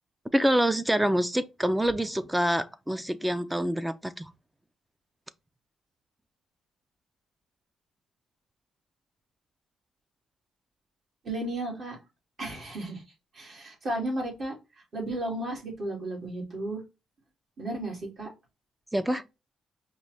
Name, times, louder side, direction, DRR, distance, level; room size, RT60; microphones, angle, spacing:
voice 1, 0.3-4.3 18.9-19.2, equal, 5° right, 0.5 m, -26 dB
voice 2, 11.2-12.0 12.4-13.0 13.3-14.5 14.9-16.8 17.6-18.3, right 1 dB, 50° right, 2.9 m, -33 dB
5.3 x 2.6 x 3.4 m
cardioid pair, 90°, 0 cm